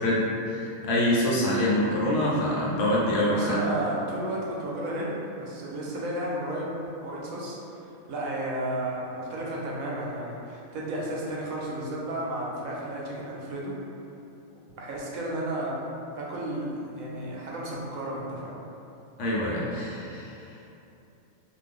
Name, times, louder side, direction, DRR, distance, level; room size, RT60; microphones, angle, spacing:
voice 1, 0.0-3.6 19.2-20.4, left 1 dB, 65° left, -6 dB, 1.0 m, -25 dB
voice 2, 3.3-7.6 8.1-13.8 14.8-15.8 16.2-18.6, right 1 dB, 85° right, -4 dB, 1.0 m, -33 dB
2.6 x 2.3 x 3.4 m, 2.8 s
omnidirectional pair, 1.4 m